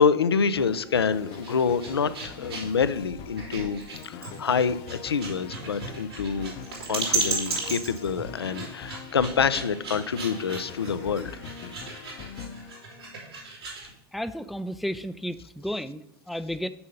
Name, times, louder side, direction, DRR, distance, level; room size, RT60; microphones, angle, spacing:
voice 1, 0.0-6.5 6.9-11.3, left 6 dB, 85° left, 15 dB, 0.5 m, -26 dB
sound 1, 0.6-13.5, left 7 dB, 45° left, 0.7 m, -42 dB
sound 2, 1.2-13.9, right 3 dB, 90° right, 3.2 m, -35 dB
voice 2, 14.1-16.7, equal, ahead, 12 dB, 0.3 m, -33 dB
6.9 x 5.5 x 5.2 m, 0.87 s
figure-of-eight pair, 90°, 13 cm